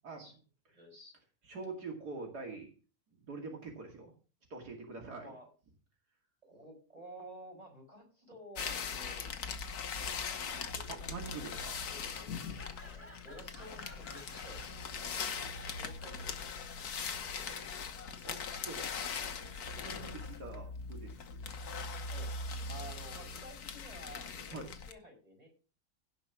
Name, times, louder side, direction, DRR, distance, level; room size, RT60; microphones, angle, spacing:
voice 1, 0.7-1.2 5.2-5.5 6.4-10.3 12.8-14.6 15.0-16.8 22.1-22.3 22.7-25.5, equal, 25° right, 0 dB, 5.8 m, -52 dB
voice 2, 1.5-2.7 3.2-4.1 4.5-5.3 10.9-11.8 18.2-18.4 18.6-18.8 19.7-21.2 22.7-22.8 24.5-24.7, right 3 dB, 80° right, 1 dB, 2.9 m, -44 dB
sound 1, 8.5-24.9, left 5 dB, 70° left, 1.6 m, -40 dB
Laughter, 10.3-20.7, left 2 dB, 10° left, 3.2 m, -57 dB
16.5 x 5.5 x 5.9 m, 0.37 s
omnidirectional pair, 1.7 m